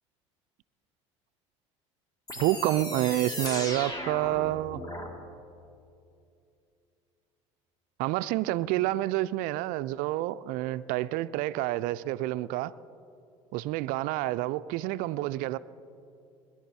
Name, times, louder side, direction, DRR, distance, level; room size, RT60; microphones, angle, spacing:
sound 1, 2.3-5.1, left 1 dB, 25° left, 2.1 m, -36 dB
voice 1, 2.4-4.8 8.0-12.7 13.5-15.6, right 16 dB, 60° right, 15 dB, 0.4 m, -28 dB
21.5 x 11.0 x 4.3 m, 2.6 s
hypercardioid pair, 75°, 16 cm